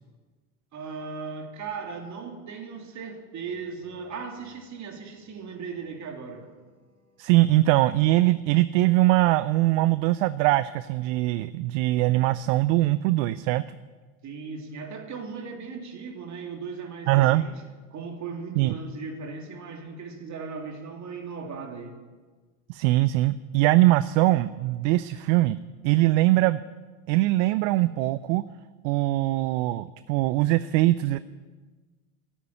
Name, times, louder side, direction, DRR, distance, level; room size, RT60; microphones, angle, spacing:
voice 1, 0.7-6.5 14.2-17.6 17.9-22.0, right 5 dB, 40° right, 3 dB, 3.0 m, -37 dB
sound 1, 3.4-8.9, left 3 dB, 15° right, 5.5 m, -60 dB
voice 2, 7.2-13.6 17.1-17.4 18.6-18.7 22.7-25.6 25.8-26.6 27.1-28.4 28.8-31.2, right 17 dB, 65° right, 16 dB, 0.6 m, -22 dB
13.5 x 8.3 x 9.9 m, 1.3 s
hypercardioid pair, 90°, 42 cm